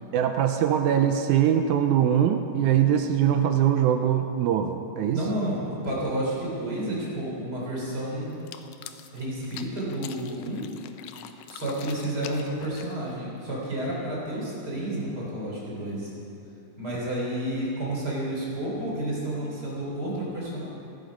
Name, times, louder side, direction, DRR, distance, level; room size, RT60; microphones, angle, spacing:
voice 1, 0.1-5.2 20.1-20.2, right 9 dB, 80° right, 6 dB, 1.8 m, -22 dB
voice 2, 5.1-8.4 9.1-10.6 11.5-16.1 16.8-20.7, right 1 dB, 30° right, -5 dB, 3.7 m, -30 dB
sound 1, 8.3-13.2, left 10 dB, 85° left, 2.4 m, -44 dB
16.5 x 12.0 x 5.2 m, 2.7 s
omnidirectional pair, 3.9 m